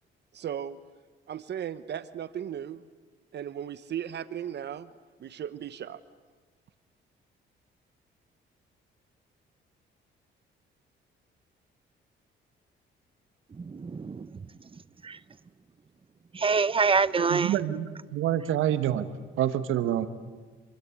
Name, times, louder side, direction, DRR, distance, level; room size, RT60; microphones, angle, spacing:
voice 1, 0.3-0.8 1.3-2.8 3.3-4.9 5.2-6.0, right 9 dB, 60° right, 15 dB, 1.0 m, -36 dB
voice 2, 13.6-14.3 15.0-15.2 16.3-17.5, right 5 dB, 25° right, 18 dB, 0.8 m, -25 dB
voice 3, 17.2-19.1 19.4-20.1, right 11 dB, 90° right, 12 dB, 1.4 m, -27 dB
27.0 x 22.5 x 8.5 m, 1.4 s
cardioid pair, 90°, 20 cm